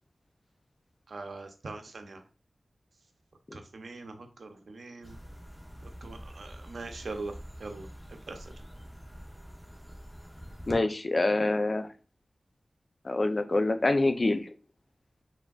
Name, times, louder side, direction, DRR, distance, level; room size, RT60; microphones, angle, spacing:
voice 1, 1.1-2.2 3.5-5.2 6.0-7.3 7.6-7.9 8.3-8.4, right 3 dB, 85° right, 6 dB, 0.6 m, -41 dB
sound 1, 5.0-10.7, equal, 5° right, 0.8 m, -46 dB
voice 2, 10.7-11.9 13.0-14.5, left 2 dB, 45° left, 9 dB, 0.4 m, -26 dB
4.9 x 3.4 x 2.3 m, 0.35 s
wide cardioid pair, 90°, 0 cm